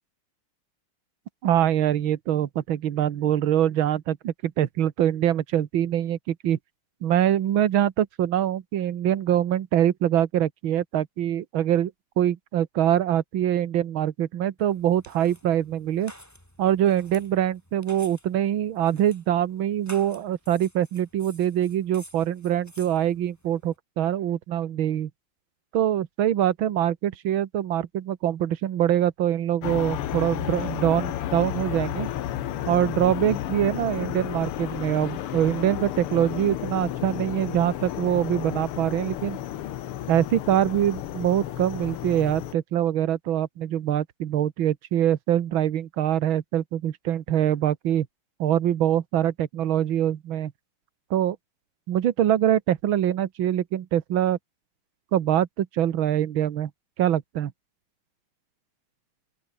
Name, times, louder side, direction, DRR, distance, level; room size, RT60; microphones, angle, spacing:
voice 1, 1.4-6.6 7.0-11.9 12.2-16.1 16.6-25.1 25.7-32.1 32.7-39.4 40.1-48.1 48.4-50.5 51.1-51.4 51.9-54.4 55.1-56.7 57.0-57.5, right 11 dB, 70° right, 1.9 m, -24 dB
sound 1, 14.6-23.8, equal, 5° left, 7.2 m, -51 dB
sound 2, 29.6-42.5, left 12 dB, 85° left, 2.0 m, -32 dB
open air
omnidirectional pair, 2.4 m